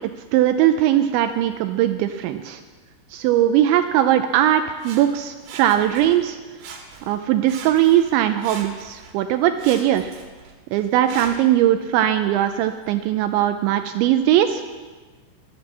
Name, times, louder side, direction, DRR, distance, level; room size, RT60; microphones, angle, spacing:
voice 1, 0.3-2.6 3.1-6.4 7.1-10.1 10.7-14.6, right 12 dB, 85° right, 8 dB, 2.6 m, -19 dB
Sawing, 4.8-6.3 6.6-7.2 7.5-9.2 9.6-11.6 12.2-12.3, right 5 dB, 65° right, 3.6 m, -40 dB
16.0 x 11.0 x 7.4 m, 1.3 s
omnidirectional pair, 5.9 m